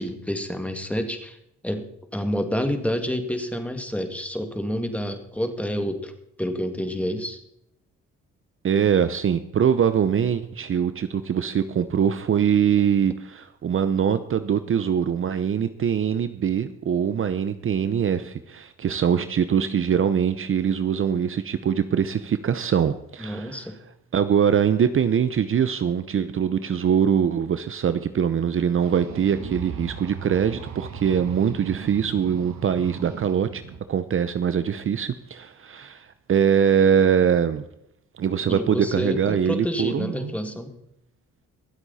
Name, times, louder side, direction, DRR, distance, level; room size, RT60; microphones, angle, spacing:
voice 1, 0.0-1.4 1.6-6.1 6.4-7.4 23.2-23.8 38.5-40.7, equal, 5° left, 6 dB, 2.2 m, -28 dB
voice 2, 8.6-23.7 24.1-33.6 33.9-37.6 38.2-40.3, right 8 dB, 45° right, 11 dB, 0.8 m, -23 dB
sound 1, 28.8-33.8, right 6 dB, 65° right, 1.7 m, -38 dB
23.0 x 8.0 x 4.2 m, 0.77 s
cardioid pair, 90°, 30 cm